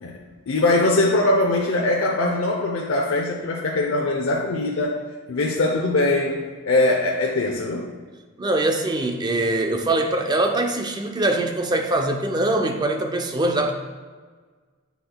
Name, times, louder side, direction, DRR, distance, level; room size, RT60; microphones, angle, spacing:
voice 1, 0.0-4.9 5.3-7.9, left 2 dB, 85° left, -1 dB, 0.7 m, -22 dB
voice 2, 8.4-13.7, right 2 dB, 20° right, 4 dB, 0.5 m, -23 dB
8.2 x 5.9 x 2.3 m, 1.5 s
head